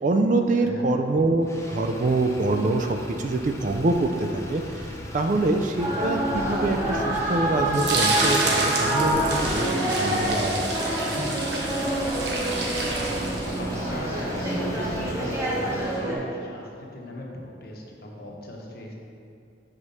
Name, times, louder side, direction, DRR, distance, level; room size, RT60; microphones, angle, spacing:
voice 1, 0.0-4.6 5.1-10.7, right 2 dB, 40° right, 5 dB, 0.3 m, -25 dB
Motor vehicle (road), 1.4-16.0, left 1 dB, 15° left, 0.5 m, -38 dB
sound 1, 5.8-16.2, right 1 dB, 15° right, 1.0 m, -27 dB
sound 2, 7.7-13.8, right 2 dB, 65° right, 1.0 m, -29 dB
voice 2, 12.7-18.9, equal, 55° left, -1 dB, 0.9 m, -38 dB
6.1 x 5.0 x 4.2 m, 2.6 s
head